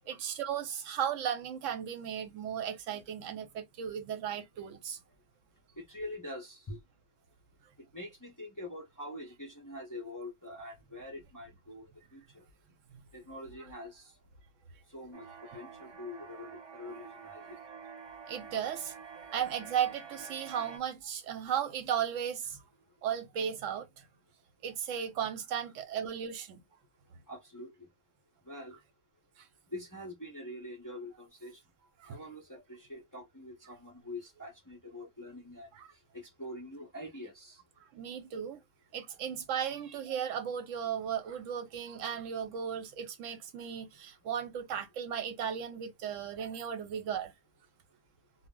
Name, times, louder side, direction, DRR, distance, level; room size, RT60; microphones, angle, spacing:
voice 1, 0.1-5.0 18.3-22.6 23.0-23.9 24.6-26.6 32.0-32.1 35.7-35.9 37.9-38.6 38.9-47.3, right 8 dB, 85° right, 1.0 m, -35 dB
voice 2, 5.8-6.8 7.9-12.4 13.1-14.1 14.9-15.2 15.5-17.6 27.3-27.9 28.5-28.8 29.7-31.6 32.1-35.7 36.1-37.6, left 1 dB, 25° left, 0.4 m, -45 dB
sound 1, 15.1-20.8, right 6 dB, 35° right, 0.4 m, -48 dB
2.1 x 2.0 x 3.5 m
omnidirectional pair, 1.3 m